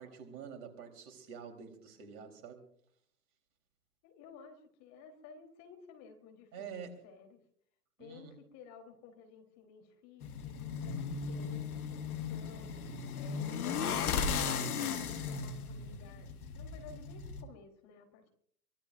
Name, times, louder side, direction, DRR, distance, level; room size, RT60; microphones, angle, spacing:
voice 1, 0.0-2.6 6.5-6.9 8.0-8.4, right 7 dB, 40° right, 4 dB, 4.0 m, -47 dB
voice 2, 4.0-7.4 8.0-11.0 11.3-12.7 13.2-14.5 14.8-18.3, left 5 dB, 35° left, 4 dB, 3.9 m, -55 dB
sound 1, 10.2-17.4, left 6 dB, 65° left, 2.1 m, -36 dB
24.0 x 19.5 x 2.7 m, 0.65 s
hypercardioid pair, 115°, 48 cm